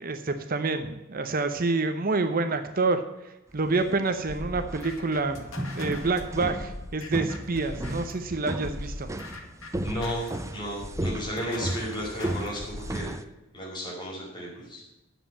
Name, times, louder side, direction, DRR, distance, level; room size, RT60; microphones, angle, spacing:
voice 1, 0.0-3.0 3.5-5.4 5.7-9.1, right 3 dB, 45° right, 8 dB, 0.8 m, -27 dB
sound 1, 3.6-13.2, right 1 dB, 15° right, 0.6 m, -35 dB
sound 2, 4.3-8.2 8.6-13.0, left 1 dB, 85° left, 2.3 m, -40 dB
voice 2, 9.8-10.2 10.5-13.1 13.5-14.8, equal, 20° left, -4 dB, 5.4 m, -33 dB
10.0 x 7.5 x 8.5 m, 1.0 s
head